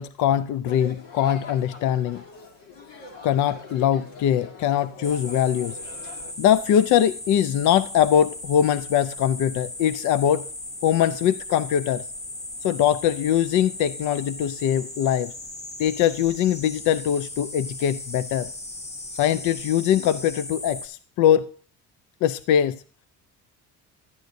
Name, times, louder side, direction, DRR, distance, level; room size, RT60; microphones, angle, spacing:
voice 1, 0.0-2.2 3.2-5.8 6.4-10.5 10.8-12.1 12.6-15.3 15.8-18.5 19.1-21.5 22.2-22.8, left 10 dB, 65° left, 0.4 m, -22 dB
sound 1, 0.7-6.3, left 3 dB, 90° left, 2.2 m, -42 dB
sound 2, 5.0-20.9, left 2 dB, 20° left, 0.8 m, -37 dB
12.0 x 9.3 x 2.6 m
cardioid pair, 160°, 33 cm